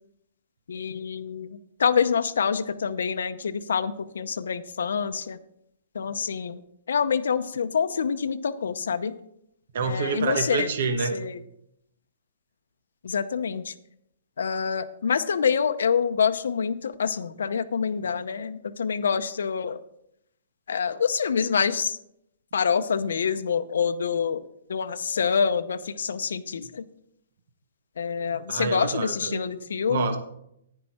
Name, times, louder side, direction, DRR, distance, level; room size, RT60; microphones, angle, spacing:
voice 1, 0.7-5.4 5.9-6.6 6.9-9.1 9.8-10.7 11.1-11.4 13.0-13.7 14.4-19.8 20.7-22.0 22.5-24.4 24.7-26.8 28.0-30.2, left 6 dB, 80° left, 10 dB, 0.7 m, -26 dB
voice 2, 9.7-11.1 28.5-29.4 29.8-30.2, right 5 dB, 50° right, 6 dB, 1.2 m, -27 dB
10.0 x 9.7 x 4.3 m, 0.76 s
hypercardioid pair, 175°, 0 cm